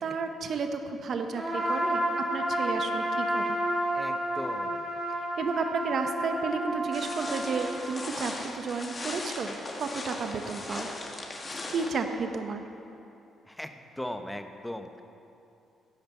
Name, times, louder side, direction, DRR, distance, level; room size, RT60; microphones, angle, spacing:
voice 1, 0.0-2.1 2.3-3.6 5.4-10.9 11.7-12.6, right 4 dB, 60° right, 6 dB, 0.9 m, -32 dB
Trumpet, 1.3-7.8, right 1 dB, 20° right, 2.9 m, -30 dB
voice 2, 3.9-4.8 13.5-13.7 14.0-15.0, left 1 dB, 5° left, 7 dB, 0.8 m, -38 dB
sound 1, 6.9-11.9, left 2 dB, 30° left, 1.7 m, -38 dB
14.0 x 5.2 x 8.3 m, 2.8 s
cardioid pair, 90°, 0 cm